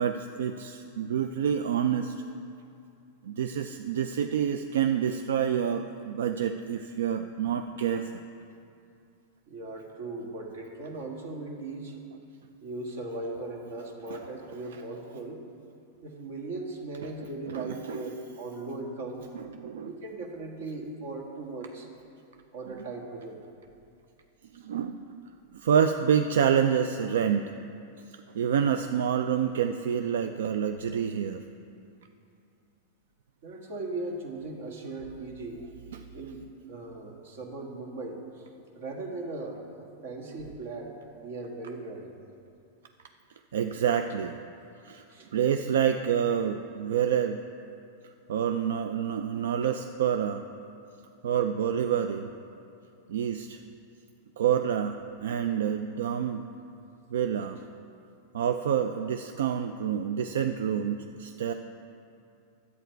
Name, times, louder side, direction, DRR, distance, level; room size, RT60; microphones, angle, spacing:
voice 1, 0.0-2.2 3.2-8.1 14.1-14.2 17.5-18.0 19.3-19.9 24.5-25.0 25.5-27.5 28.3-31.4 35.9-36.0 43.5-44.4 44.8-45.0 45.3-47.4 48.3-50.4 51.2-52.3 53.1-53.6 54.4-56.5 57.1-57.6 58.3-61.5, right 8 dB, 90° right, 8 dB, 0.4 m, -27 dB
voice 2, 9.5-12.0 12.6-15.4 16.0-19.2 19.8-21.9 22.5-23.4 24.6-24.7 33.4-35.6 36.1-38.4 38.7-42.1 45.1-45.3, right 2 dB, 65° right, 1 dB, 1.6 m, -38 dB
10.5 x 8.2 x 4.6 m, 2.5 s
supercardioid pair, 160°, 0 cm